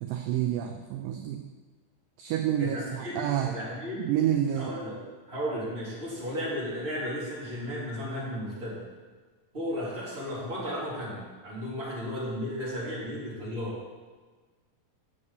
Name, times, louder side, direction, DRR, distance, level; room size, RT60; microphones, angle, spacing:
voice 1, 0.0-1.4 2.2-3.5 4.0-4.8, right 10 dB, 80° right, 5 dB, 2.1 m, -28 dB
voice 2, 2.6-3.2 3.5-4.0 4.5-4.9 5.3-8.8 9.5-13.8, equal, 15° right, -8 dB, 2.8 m, -34 dB
6.7 x 6.7 x 7.0 m, 1.4 s
omnidirectional pair, 4.2 m